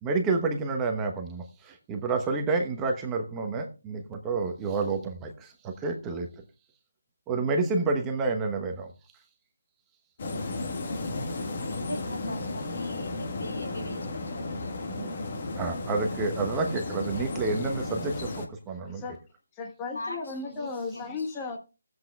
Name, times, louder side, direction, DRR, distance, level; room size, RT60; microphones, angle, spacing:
voice 1, 0.0-6.3 7.3-8.9 14.9-15.2 15.6-19.0, right 3 dB, 15° right, 1.0 m, -29 dB
sound 1, 10.2-18.5, left 2 dB, 45° left, 1.5 m, -34 dB
voice 2, 11.2-14.9 19.9-21.4, left 1 dB, 85° left, 2.8 m, -40 dB
voice 3, 18.7-19.2 19.5-21.6, left 4 dB, 15° left, 1.3 m, -36 dB
17.5 x 7.9 x 2.3 m
figure-of-eight pair, 155°, 0 cm